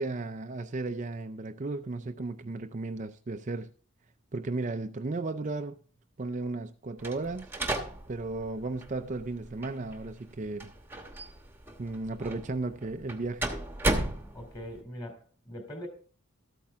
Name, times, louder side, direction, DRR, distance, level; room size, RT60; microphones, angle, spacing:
voice 1, 0.0-3.7 4.3-5.8 6.2-7.5 8.1-10.7 11.8-13.5, right 3 dB, 35° right, 0.4 m, -34 dB
sound 1, 7.0-14.8, right 1 dB, 10° right, 1.1 m, -35 dB
voice 2, 14.3-15.9, equal, 20° left, 2.9 m, -42 dB
13.0 x 8.7 x 3.5 m
head